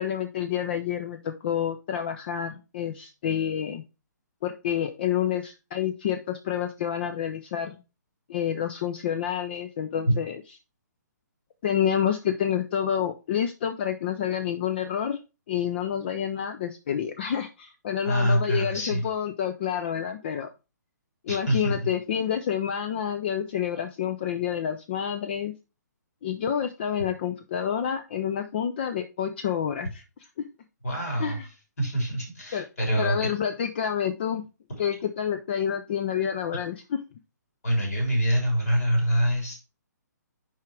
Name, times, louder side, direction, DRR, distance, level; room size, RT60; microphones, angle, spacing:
voice 1, 0.0-3.8 4.4-7.8 8.3-10.4 11.6-15.2 15.5-20.5 21.2-25.5 26.2-30.0 31.2-31.4 32.5-32.6 32.9-34.4 34.8-37.0, left 9 dB, 35° left, 8 dB, 0.5 m, -28 dB
voice 2, 18.0-19.0 21.3-21.8 30.8-31.4 31.8-33.3 37.6-39.6, equal, 55° left, 0 dB, 3.5 m, -25 dB
5.6 x 4.9 x 4.5 m, 0.29 s
figure-of-eight pair, 130°, 10 cm